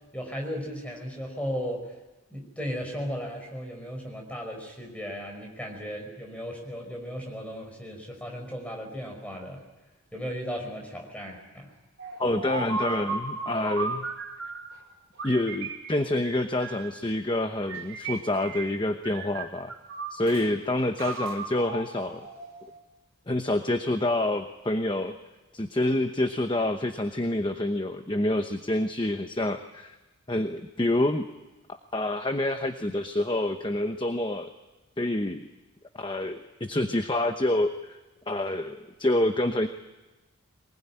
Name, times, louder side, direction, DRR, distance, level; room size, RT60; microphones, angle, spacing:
voice 1, 0.1-1.8 2.3-9.6 10.1-11.7, equal, 5° left, 1 dB, 5.4 m, -36 dB
sound 1, 12.0-14.7 15.2-17.0 17.6-18.8 19.0-20.5 21.0-22.8, right 4 dB, 60° right, 4.9 m, -36 dB
voice 2, 12.2-14.1 15.2-19.7 20.1-22.3 23.3-25.1 25.5-30.0 30.3-31.3 31.9-34.5 35.0-35.5 35.9-38.0 38.3-39.7, left 1 dB, 20° left, 7 dB, 0.9 m, -27 dB
23.0 x 20.5 x 9.9 m, 1.1 s
head